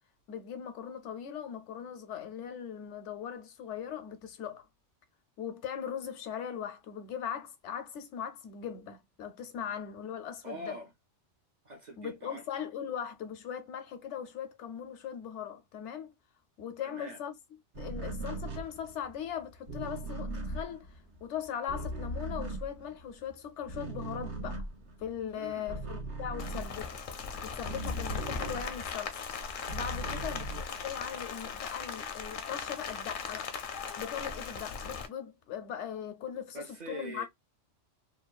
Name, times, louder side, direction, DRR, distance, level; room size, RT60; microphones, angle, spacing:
voice 1, 0.3-4.7 5.4-10.8 12.0-16.1 16.6-17.3 17.8-20.9 21.2-24.7 25.0-26.9 27.4-29.2 29.7-33.5 34.0-37.2, left 8 dB, 80° left, 0.9 m, -39 dB
voice 2, 10.4-10.9 11.6-12.5 16.8-17.2 25.3-25.7 30.0-30.2 36.5-37.2, right 1 dB, 45° right, 0.7 m, -43 dB
sound 1, 17.7-23.3 23.6-29.1 29.4-31.3, right 2 dB, 75° right, 1.1 m, -39 dB
Rain, 26.4-35.1, left 6 dB, 60° left, 0.6 m, -38 dB
2.8 x 2.2 x 2.2 m
omnidirectional pair, 1.2 m